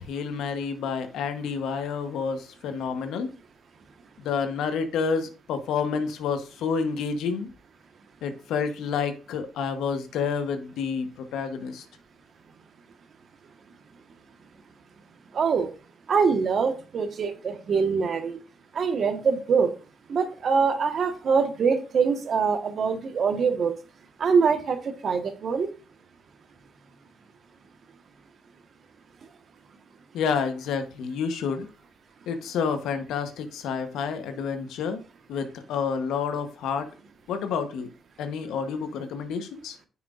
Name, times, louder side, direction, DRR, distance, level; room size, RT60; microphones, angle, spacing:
voice 1, 0.0-3.3 4.2-7.5 8.2-11.8 30.1-31.7 32.3-35.0 35.3-36.9 37.3-37.9 38.2-39.7, left 6 dB, 85° left, 8 dB, 1.0 m, -29 dB
voice 2, 15.3-15.7 16.1-18.4 18.7-19.7 20.1-23.7 24.2-24.8 25.0-25.7, right 5 dB, 55° right, 7 dB, 1.3 m, -23 dB
9.4 x 5.7 x 2.5 m, 0.35 s
cardioid pair, 75°, 0 cm